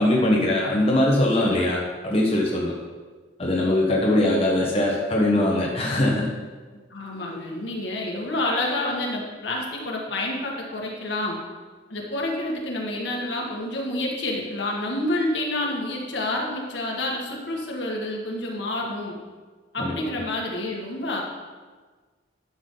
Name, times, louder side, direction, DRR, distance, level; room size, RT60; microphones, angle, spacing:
voice 1, 0.0-2.7 3.4-6.3 19.8-19.9, left 1 dB, 30° left, -4 dB, 1.2 m, -21 dB
voice 2, 6.9-11.4 11.9-19.2 19.7-21.2, left 1 dB, 65° left, -2 dB, 1.9 m, -28 dB
11.5 x 7.3 x 3.9 m, 1.4 s
head